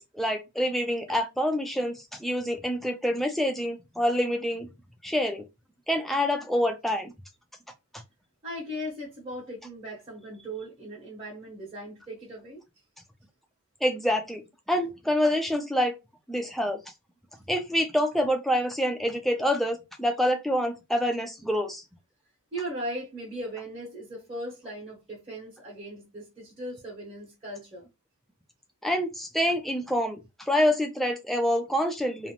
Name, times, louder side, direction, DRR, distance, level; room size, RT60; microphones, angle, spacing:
voice 1, 0.0-4.7 5.0-5.5 5.9-7.1 13.8-16.0 16.3-16.8 17.5-21.8 28.8-32.3, equal, ahead, 0.3 m, -27 dB
voice 2, 8.4-12.6 22.5-27.9, equal, 25° right, 0.8 m, -38 dB
2.5 x 2.1 x 2.8 m
head